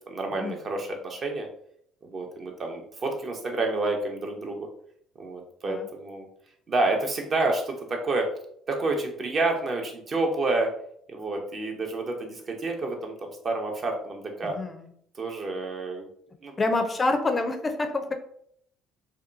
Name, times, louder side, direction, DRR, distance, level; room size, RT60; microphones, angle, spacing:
voice 1, 0.1-1.5 2.0-4.7 5.2-6.3 6.7-8.3 8.7-10.7 11.1-14.6 15.1-16.1 16.4-16.5, right 2 dB, 45° right, 2 dB, 0.6 m, -29 dB
voice 2, 14.4-14.9 16.6-18.1, left 2 dB, 30° left, 6 dB, 0.4 m, -27 dB
2.7 x 2.2 x 2.5 m, 0.67 s
supercardioid pair, 70°, 0 cm